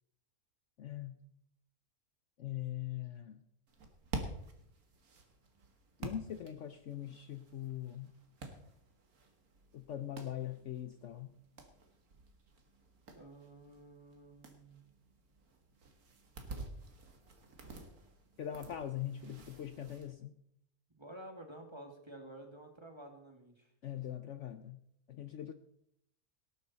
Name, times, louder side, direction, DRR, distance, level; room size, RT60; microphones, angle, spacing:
voice 1, 0.8-1.2 2.4-3.4 6.0-8.1 9.7-11.3 18.4-20.3 23.8-24.8 25.1-25.5, left 11 dB, 60° left, 10 dB, 0.9 m, -42 dB
sound 1, 3.7-20.1, right 2 dB, 70° right, 2.2 m, -50 dB
voice 2, 13.1-14.8 20.9-23.7, right 1 dB, 20° right, 3 dB, 2.0 m, -51 dB
18.0 x 11.0 x 4.1 m, 0.73 s
omnidirectional pair, 1.6 m